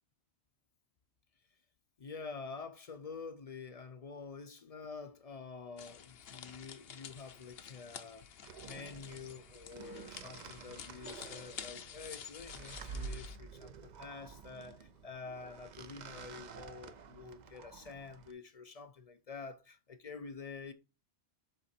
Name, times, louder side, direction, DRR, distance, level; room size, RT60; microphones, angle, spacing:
voice 1, 2.0-8.3 8.6-20.7, left 4 dB, 50° left, 0.5 m, -48 dB
sound 1, 5.8-13.4, left 8 dB, 65° left, 0.9 m, -50 dB
sound 2, 8.4-18.3, right 5 dB, 50° right, 0.6 m, -50 dB
7.6 x 4.0 x 4.2 m
omnidirectional pair, 1.1 m